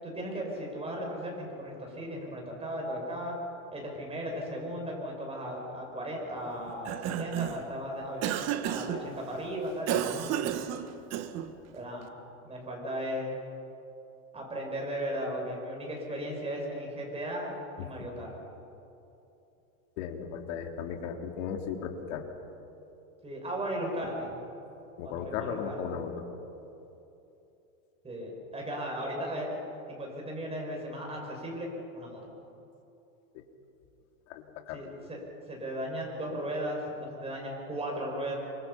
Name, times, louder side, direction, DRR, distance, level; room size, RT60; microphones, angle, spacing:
voice 1, 0.0-3.4 3.7-10.5 11.7-12.1 12.4-13.4 14.3-17.5 17.8-18.4 23.2-24.4 25.0-25.8 28.0-29.6 29.9-31.7 31.9-32.2 34.7-35.2 35.5-38.4, equal, 15° right, -1 dB, 6.5 m, -36 dB
Cough, 6.7-7.7 8.2-9.0 9.9-11.5, right 10 dB, 40° right, 1.5 m, -32 dB
voice 2, 20.0-22.2 25.0-26.2 33.3-33.4 34.3-34.8, left 7 dB, 60° left, 3 dB, 3.1 m, -36 dB
27.5 x 25.0 x 5.8 m, 2.9 s
supercardioid pair, 135°, 41 cm